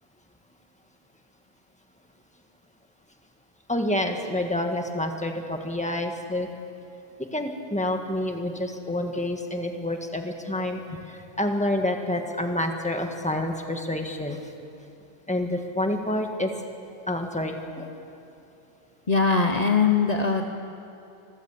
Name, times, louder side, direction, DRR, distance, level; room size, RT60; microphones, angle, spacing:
voice 1, 3.7-6.5 7.3-14.4 15.3-16.5 17.1-17.9, left 1 dB, 5° left, 4 dB, 1.7 m, -28 dB
voice 2, 19.1-20.4, left 5 dB, 40° left, 4 dB, 1.0 m, -21 dB
26.0 x 14.5 x 8.5 m, 2.8 s
omnidirectional pair, 1.0 m